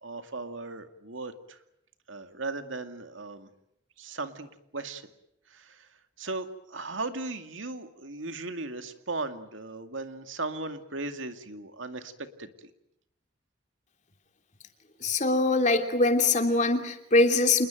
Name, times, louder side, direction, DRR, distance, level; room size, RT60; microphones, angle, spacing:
voice 1, 0.0-1.6 2.1-3.5 4.0-5.1 5.5-5.9 6.2-12.1 12.4-12.7, right 3 dB, 85° right, 8 dB, 2.2 m, -37 dB
voice 2, 15.0-17.7, left 2 dB, 40° left, 6 dB, 3.0 m, -23 dB
27.5 x 21.0 x 9.1 m, 0.77 s
head